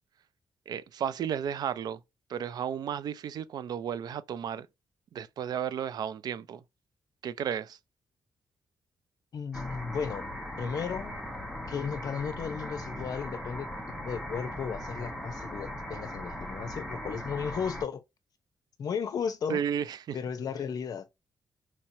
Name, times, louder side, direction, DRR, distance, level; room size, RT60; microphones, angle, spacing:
voice 1, 0.7-2.0 2.3-4.7 5.1-6.6 7.2-7.8 19.5-20.2, right 8 dB, 65° right, 0.4 m, -33 dB
voice 2, 9.3-10.3 10.6-11.2 11.7-13.7 14.0-18.0 18.8-19.6 20.1-21.1, left 6 dB, 60° left, 0.7 m, -34 dB
sound 1, 9.5-17.8, left 1 dB, 5° right, 1.0 m, -39 dB
4.5 x 2.9 x 2.7 m
cardioid pair, 130°, 7 cm